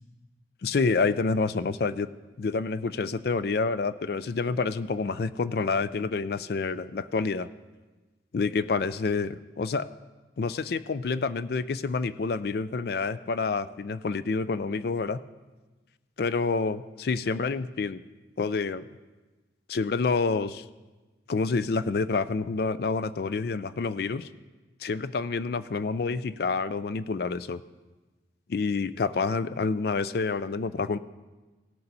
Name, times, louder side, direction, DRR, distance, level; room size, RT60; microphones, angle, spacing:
voice 1, 0.6-2.1 2.4-7.5 8.3-9.9 10.4-15.2 16.2-18.0 18.4-18.9 19.7-20.6 21.3-24.3 24.8-27.6 28.5-31.0, left 4 dB, 55° left, 14 dB, 0.4 m, -28 dB
17.0 x 6.9 x 4.1 m, 1.2 s
head